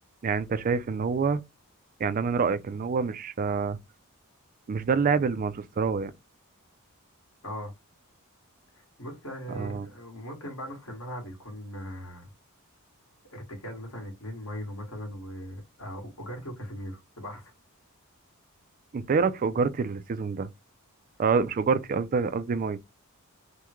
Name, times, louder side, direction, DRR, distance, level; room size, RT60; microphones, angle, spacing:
voice 1, 0.2-1.4 2.0-3.8 4.7-6.1 9.6-9.9 18.9-20.5 21.2-22.8, right 5 dB, 40° right, 0.3 m, -26 dB
voice 2, 8.7-12.3 13.3-17.5, equal, 70° left, 1.8 m, -39 dB
3.5 x 2.1 x 3.0 m
head